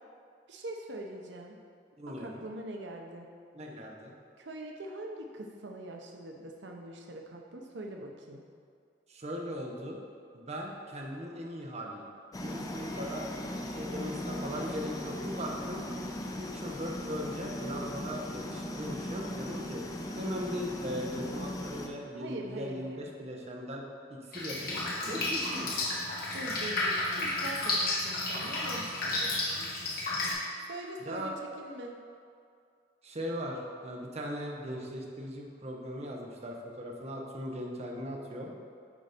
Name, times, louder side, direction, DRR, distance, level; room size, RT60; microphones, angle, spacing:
voice 1, 0.5-1.6 2.0-3.3 4.4-8.4 22.1-23.1 26.3-29.8 30.6-32.0, right 1 dB, 85° right, 2 dB, 0.7 m, -43 dB
voice 2, 2.0-2.4 3.5-4.1 9.1-10.0 10.3-12.1 12.4-13.3 13.6-15.8 16.4-19.8 20.2-25.7 31.0-31.3 33.0-38.5, equal, 40° right, 0 dB, 0.9 m, -39 dB
sound 1, 12.3-21.9, left 1 dB, 20° left, 0.6 m, -38 dB
Drip, 24.3-30.3, left 2 dB, 55° left, 1.8 m, -32 dB
8.5 x 4.0 x 5.1 m, 2.3 s
head